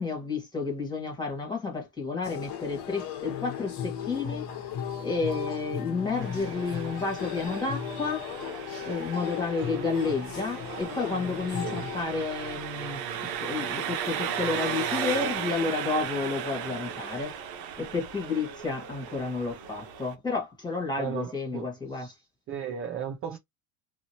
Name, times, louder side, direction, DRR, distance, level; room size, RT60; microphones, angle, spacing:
voice 1, 0.0-4.5 5.0-8.3 8.8-17.3 17.8-22.1, left 4 dB, 10° left, 1.4 m, -31 dB
sound 1, 2.2-12.0, left 8 dB, 60° left, 1.2 m, -36 dB
Engine, 6.1-20.1, right 8 dB, 90° right, 0.9 m, -36 dB
voice 2, 21.0-22.1 22.5-23.4, right 8 dB, 30° right, 0.4 m, -35 dB
2.8 x 2.6 x 2.8 m
cardioid pair, 130°, 48 cm